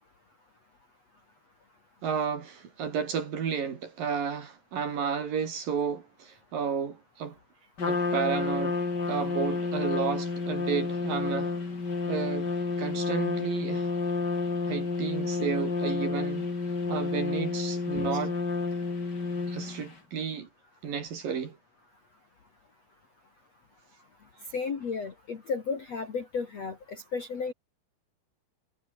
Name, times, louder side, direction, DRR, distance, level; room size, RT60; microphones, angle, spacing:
voice 1, 2.0-7.4 7.9-8.8 9.1-11.5 12.1-12.5 12.8-13.9 14.7-16.5 16.9-18.4 19.5-20.5 20.8-21.6, right 6 dB, 50° right, 3.8 m, -32 dB
Trumpet, 7.8-19.9, left 4 dB, 25° left, 3.3 m, -30 dB
voice 2, 24.5-27.5, left 5 dB, 45° left, 2.5 m, -33 dB
omnidirectional pair, 5.8 m